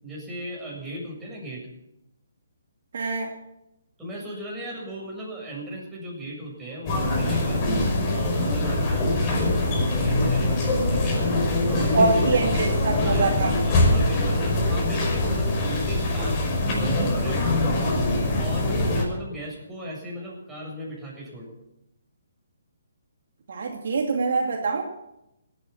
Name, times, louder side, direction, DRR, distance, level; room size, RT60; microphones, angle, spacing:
voice 1, 0.0-1.7 4.0-11.2 11.7-12.5 12.9-17.7 18.4-21.5, right 1 dB, 5° right, -5 dB, 7.5 m, -36 dB
voice 2, 2.9-3.3 11.9-13.5 23.5-24.8, right 3 dB, 60° right, 1 dB, 2.5 m, -24 dB
sound 1, 6.9-19.0, left 1 dB, 30° left, 5.4 m, -23 dB
18.0 x 9.8 x 7.3 m, 0.87 s
hypercardioid pair, 145°, 0 cm